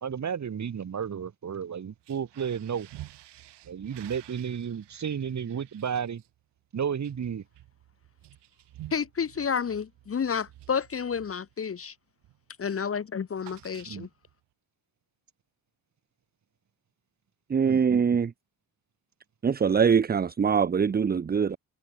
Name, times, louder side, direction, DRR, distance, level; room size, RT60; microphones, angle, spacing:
voice 1, 0.0-2.9 3.7-6.2 6.7-7.4 13.8-14.1 17.6-18.0, right 7 dB, 40° right, 1.6 m, -32 dB
sound 1, 1.9-11.9 12.2-12.5 12.8-14.3, right 14 dB, 65° right, 5.9 m, -51 dB
voice 2, 8.9-11.9 12.6-14.1, left 6 dB, 30° left, 1.0 m, -30 dB
voice 3, 17.5-18.3 19.4-21.6, right 6 dB, 20° right, 0.7 m, -23 dB
hypercardioid pair, 40°, 44 cm